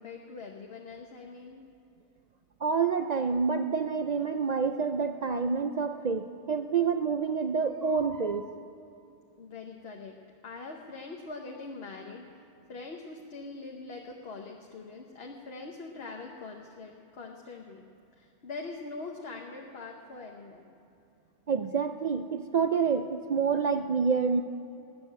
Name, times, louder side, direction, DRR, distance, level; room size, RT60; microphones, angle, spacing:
voice 1, 0.0-1.7 9.4-10.2 10.4-12.3 12.7-17.9 18.1-20.7, left 3 dB, 60° left, 1 dB, 1.2 m, -43 dB
voice 2, 2.6-8.5 21.5-24.4, right 5 dB, 55° right, 7 dB, 0.4 m, -28 dB
19.5 x 7.0 x 8.8 m, 2.7 s
omnidirectional pair, 1.2 m